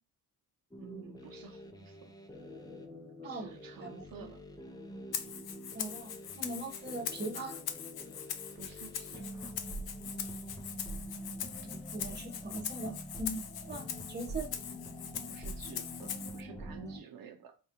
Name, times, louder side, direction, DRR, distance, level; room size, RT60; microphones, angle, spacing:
sound 1, 0.7-17.0, equal, 10° left, 0.6 m, -46 dB
voice 1, 0.8-2.1 3.2-4.4 8.5-9.7 15.3-17.5, right 7 dB, 65° right, 0.7 m, -51 dB
Rattle (instrument), 5.1-16.4, left 9 dB, 80° left, 0.6 m, -42 dB
voice 2, 5.7-7.6 11.6-14.5, right 2 dB, 30° right, 0.9 m, -40 dB
4.7 x 2.4 x 2.8 m
cardioid pair, 110°, 37 cm